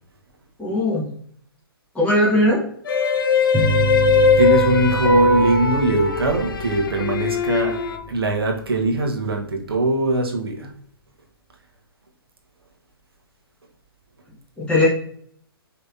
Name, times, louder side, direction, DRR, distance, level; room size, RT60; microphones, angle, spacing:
voice 1, 0.6-1.0 1.9-2.6 14.6-14.9, left 1 dB, 10° left, -6 dB, 1.6 m, -18 dB
sound 1, 2.9-8.0, left 3 dB, 60° left, 0.6 m, -20 dB
sound 2, 3.5-8.7, right 2 dB, 10° right, 0.7 m, -28 dB
voice 2, 4.1-7.8 8.1-10.7, right 2 dB, 70° right, 1 dB, 1.3 m, -21 dB
5.5 x 3.3 x 2.7 m, 0.63 s
figure-of-eight pair, 120°, 13 cm